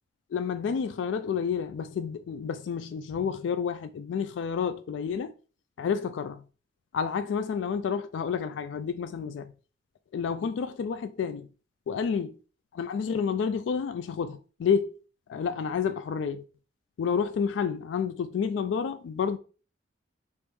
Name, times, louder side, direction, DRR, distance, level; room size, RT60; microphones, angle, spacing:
voice 1, 0.3-5.3 5.8-6.4 6.9-9.5 10.1-11.5 11.9-12.4 12.7-15.0 15.3-16.4 17.0-19.4, left 6 dB, 85° left, 0.3 m, -30 dB
3.4 x 3.1 x 4.6 m
head